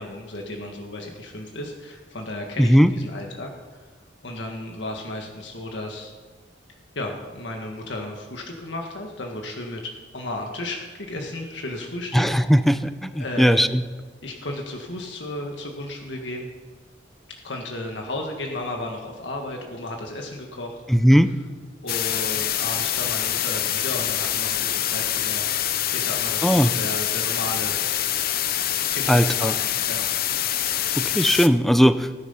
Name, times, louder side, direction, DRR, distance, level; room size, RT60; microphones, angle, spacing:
voice 1, 0.0-3.9 4.2-6.1 6.9-12.8 13.1-13.7 14.2-16.5 17.3-20.8 21.3-21.4 21.8-27.9 28.9-30.0, left 1 dB, 80° left, 1 dB, 1.7 m, -34 dB
voice 2, 2.6-2.9 12.1-13.8 20.9-21.3 26.4-26.7 29.1-29.5 30.9-32.1, equal, ahead, 12 dB, 0.5 m, -18 dB
sound 1, 21.9-31.5, left 11 dB, 55° left, 0.6 m, -25 dB
17.0 x 10.5 x 5.7 m, 1.4 s
head